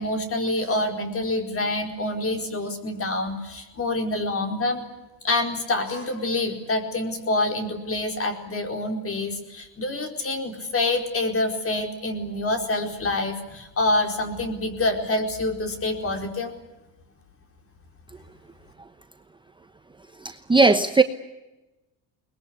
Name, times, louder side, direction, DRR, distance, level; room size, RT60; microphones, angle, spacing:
voice 1, 0.0-4.8 5.2-16.5, left 2 dB, 35° left, 5 dB, 4.7 m, -26 dB
voice 2, 20.2-21.0, right 3 dB, 10° right, 8 dB, 1.0 m, -18 dB
22.5 x 20.5 x 9.6 m, 1.0 s
cardioid pair, 115°, 41 cm